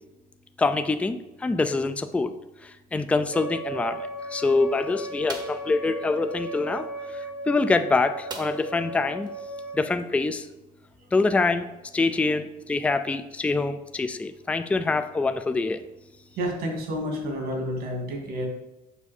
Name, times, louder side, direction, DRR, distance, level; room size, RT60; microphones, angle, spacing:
voice 1, 0.6-2.3 2.6-6.9 7.1-9.3 9.7-10.5 11.1-11.7 11.9-15.8, left 3 dB, 10° left, 9 dB, 0.3 m, -25 dB
Wind instrument woodwind instrument, 3.3-9.9, right 1 dB, 90° right, 2.8 m, -36 dB
sound 1, 5.3-5.7 8.3-8.9 9.2-9.3 9.7-9.9, right 3 dB, 25° right, 0.9 m, -39 dB
voice 2, 16.4-18.5, equal, 70° right, 1 dB, 2.3 m, -30 dB
7.0 x 5.5 x 4.2 m, 1.0 s
cardioid pair, 145°, 16 cm